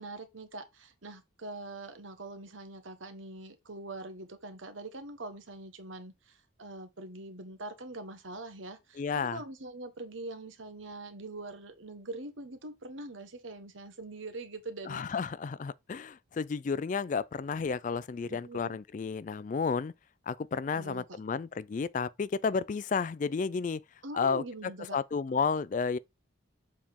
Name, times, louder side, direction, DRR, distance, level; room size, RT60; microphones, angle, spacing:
voice 1, 0.0-15.0 18.3-18.8 20.7-21.2 24.0-25.0, right 2 dB, 80° right, 1.2 m, -43 dB
voice 2, 9.0-9.4 14.9-19.9 20.3-23.8 24.1-24.4 24.9-26.0, left 5 dB, 40° left, 0.3 m, -32 dB
7.2 x 4.4 x 3.6 m
head